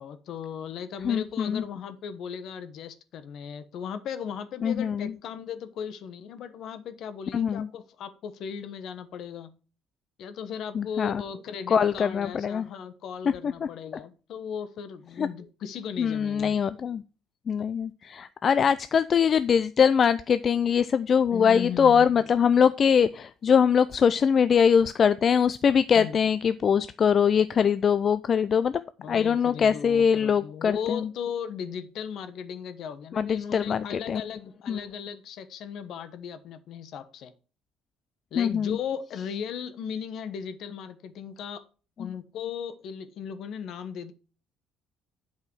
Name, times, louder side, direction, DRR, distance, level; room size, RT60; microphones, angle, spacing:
voice 1, 0.0-9.5 10.2-16.6 21.3-22.3 25.9-26.2 29.0-37.3 38.3-41.6 42.0-44.1, left 7 dB, 60° left, 12 dB, 1.1 m, -37 dB
voice 2, 1.0-1.6 4.6-5.1 7.3-7.7 10.7-11.2 11.7-12.7 13.4-13.7 15.2-15.3 16.0-17.0 17.5-28.8 29.1-31.1 33.1-34.2 34.7-34.8 38.4-38.8 42.0-42.1, left 7 dB, 40° left, 14 dB, 0.4 m, -23 dB
8.4 x 4.9 x 6.1 m, 0.36 s
cardioid pair, 115°, 0 cm